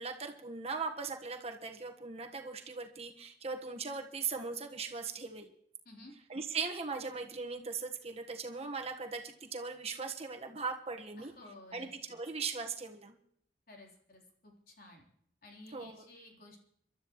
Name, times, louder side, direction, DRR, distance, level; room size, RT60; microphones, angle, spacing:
voice 1, 0.0-5.5 6.3-11.3 11.7-13.1 15.7-16.0, right 4 dB, 35° right, 4 dB, 1.4 m, -39 dB
voice 2, 11.2-12.2 13.7-15.0 15.4-16.6, left 1 dB, 55° left, -1 dB, 3.7 m, -54 dB
27.5 x 12.5 x 3.1 m, 0.70 s
head